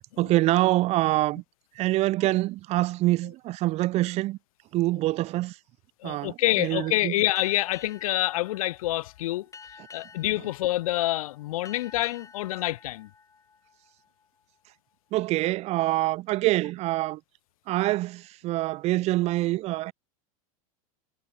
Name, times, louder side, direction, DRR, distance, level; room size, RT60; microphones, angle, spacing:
voice 1, 0.2-1.4 1.8-4.4 4.7-5.6 6.0-7.1 15.1-17.2 17.7-19.9, right 17 dB, 35° right, 0.4 m, -25 dB
voice 2, 6.0-9.5 9.9-13.1, left 16 dB, 80° left, 0.6 m, -27 dB
Boat Water vehicle, 7.4-14.4, left 5 dB, 20° left, 2.5 m, -51 dB
supercardioid pair, 115°, 18 cm